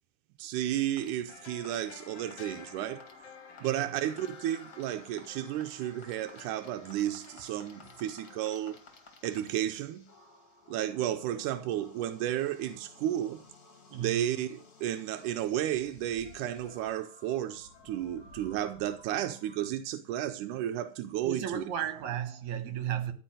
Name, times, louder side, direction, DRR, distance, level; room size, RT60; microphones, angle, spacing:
voice 1, 0.4-3.1 3.6-8.8 9.2-10.1 10.7-13.4 13.9-21.6, right 12 dB, 90° right, 2.2 m, -33 dB
sound 1, 0.8-19.7, left 3 dB, 35° left, 2.0 m, -54 dB
sound 2, 1.3-8.9 9.2-9.3, left 7 dB, 60° left, 2.0 m, -53 dB
voice 2, 13.9-14.3 21.2-23.1, right 9 dB, 70° right, 2.8 m, -34 dB
13.5 x 4.9 x 9.0 m
omnidirectional pair, 3.5 m